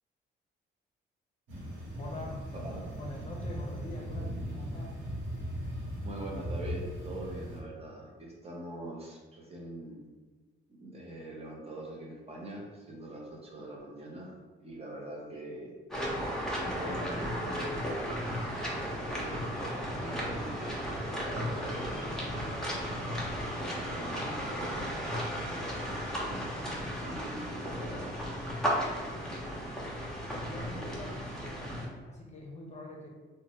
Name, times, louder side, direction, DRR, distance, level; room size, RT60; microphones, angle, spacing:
sound 1, 1.5-7.6, equal, 90° right, 0.9 m, -38 dB
voice 1, 2.0-5.0 29.1-29.5 30.0-31.2 31.9-33.1, left 1 dB, 35° left, -1 dB, 0.6 m, -44 dB
voice 2, 6.0-10.0 10.7-14.3 14.6-15.8 16.6-19.5 20.0-20.9 21.2-22.0 23.4-24.9 25.5-26.5 27.0-28.1, right 1 dB, 30° right, -2 dB, 0.7 m, -43 dB
sound 2, 15.9-31.9, equal, ahead, 0.8 m, -35 dB
2.9 x 2.2 x 2.8 m, 1.3 s
cardioid pair, 90°, 20 cm